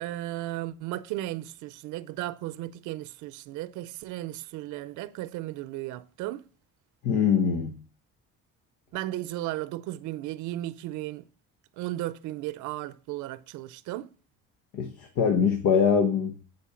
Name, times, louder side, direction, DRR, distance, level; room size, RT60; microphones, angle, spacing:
voice 1, 0.0-6.4 8.9-11.2 11.8-14.1, right 15 dB, 80° right, 0.6 m, -35 dB
voice 2, 7.0-7.7 14.7-16.4, left 6 dB, 75° left, 1.4 m, -23 dB
10.5 x 4.5 x 5.7 m
cardioid pair, 115°, 30 cm